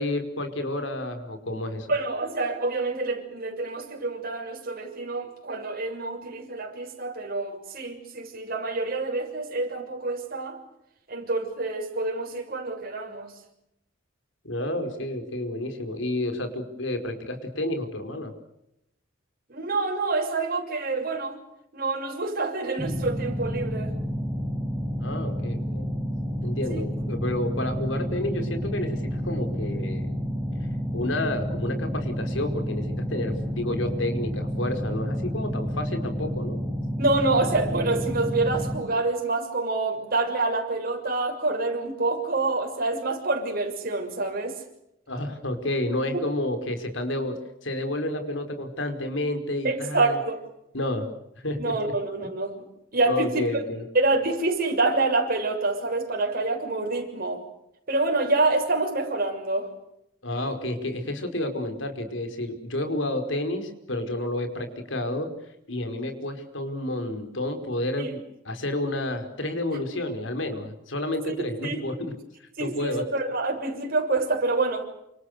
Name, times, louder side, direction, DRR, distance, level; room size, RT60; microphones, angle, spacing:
voice 1, 0.0-1.9 14.4-18.3 25.0-25.9 26.4-30.1 30.9-36.6 45.1-47.4 47.6-50.2 50.7-51.1 51.4-51.9 53.0-53.8 60.2-65.3 65.7-68.2 68.4-72.1 72.6-73.0, left 1 dB, 75° left, 6 dB, 5.0 m, -30 dB
voice 2, 1.9-10.6 11.1-13.3 19.5-21.4 21.7-23.9 26.7-26.8 37.0-44.6 49.6-50.4 51.6-52.6 52.9-53.4 53.9-57.4 57.9-59.7 68.0-68.1 69.7-69.8 71.3-71.4 71.6-71.8 72.6-74.8, right 3 dB, 50° right, 2 dB, 6.7 m, -27 dB
sound 1, 22.8-38.8, equal, 10° right, 5.7 m, -30 dB
28.5 x 26.5 x 6.7 m, 0.83 s
head